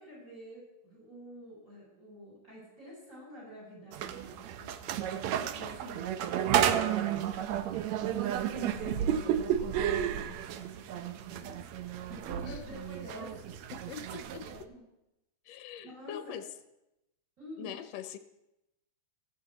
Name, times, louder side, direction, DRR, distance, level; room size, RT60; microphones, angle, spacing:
voice 1, 0.0-6.2 6.7-7.6 8.0-9.1 9.8-13.7 14.4-14.8 15.8-16.4 17.4-17.8, equal, 25° right, -4 dB, 6.8 m, -49 dB
sound 1, 3.9-14.6, right 10 dB, 75° right, 2.0 m, -32 dB
voice 2, 8.5-9.4 12.5-12.6 13.9-14.4 15.5-16.4 17.6-18.2, left 10 dB, 70° left, 9 dB, 1.8 m, -43 dB
16.0 x 6.9 x 8.1 m, 0.90 s
omnidirectional pair, 3.4 m